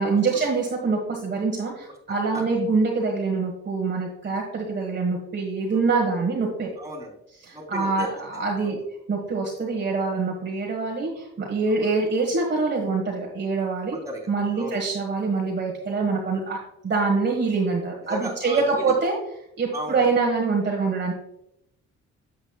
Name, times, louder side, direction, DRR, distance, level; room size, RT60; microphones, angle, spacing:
voice 1, 0.0-6.7 7.4-8.8 9.1-14.0 14.3-16.6 16.8-19.1 19.6-21.1, right 4 dB, 35° right, 0 dB, 1.4 m, -25 dB
voice 2, 2.1-2.4 5.7-5.8 6.8-7.1 7.5-8.2 8.6-8.8 11.7-11.9 13.9-14.3 14.5-14.8 18.0-19.0 19.7-20.1, right 1 dB, 10° right, -2 dB, 3.0 m, -35 dB
9.0 x 7.5 x 2.3 m, 0.78 s
cardioid pair, 90°, 30 cm